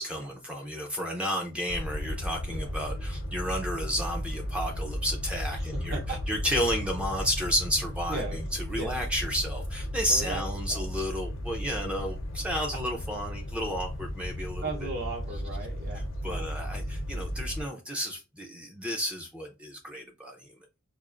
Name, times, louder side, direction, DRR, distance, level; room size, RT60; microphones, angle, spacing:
voice 1, 0.0-6.0 6.3-14.6 15.9-20.5, equal, 5° right, 1 dB, 0.4 m, -32 dB
sound 1, 1.7-17.6, left 1 dB, 65° left, 0.6 m, -35 dB
voice 2, 5.5-6.2 8.1-8.4 8.8-9.0 10.1-10.4 10.7-10.8 14.6-16.5, right 3 dB, 45° right, 0 dB, 0.7 m, -37 dB
4.9 x 2.5 x 2.4 m, 0.27 s
head